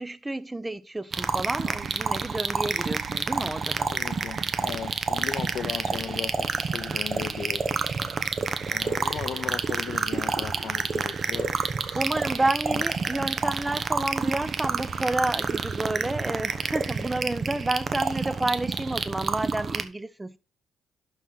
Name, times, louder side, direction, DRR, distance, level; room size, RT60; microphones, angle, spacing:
voice 1, 0.0-3.9 11.9-20.4, right 2 dB, 15° right, 0.8 m, -30 dB
sound 1, 1.1-19.8, right 5 dB, 45° right, 1.1 m, -29 dB
voice 2, 3.9-7.8 8.7-11.5 11.8-12.2 12.7-12.8, left 8 dB, 70° left, 0.7 m, -37 dB
11.5 x 4.6 x 4.1 m
cardioid pair, 90°, 0 cm